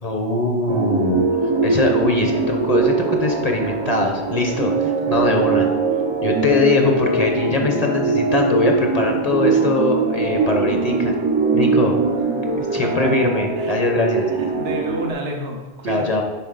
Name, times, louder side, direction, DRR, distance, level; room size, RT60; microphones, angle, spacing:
voice 1, 0.0-1.3 1.6-5.7 6.2-11.1 11.5-11.9 12.7-14.3 15.9-16.2, left 3 dB, 40° left, 2 dB, 0.8 m, -21 dB
sound 1, 0.7-15.1, right 4 dB, 35° right, 0.5 m, -21 dB
voice 2, 12.7-13.2 13.6-13.8 14.2-16.2, right 1 dB, 70° right, 1 dB, 1.1 m, -30 dB
10.0 x 3.9 x 3.9 m, 1.2 s
omnidirectional pair, 1.1 m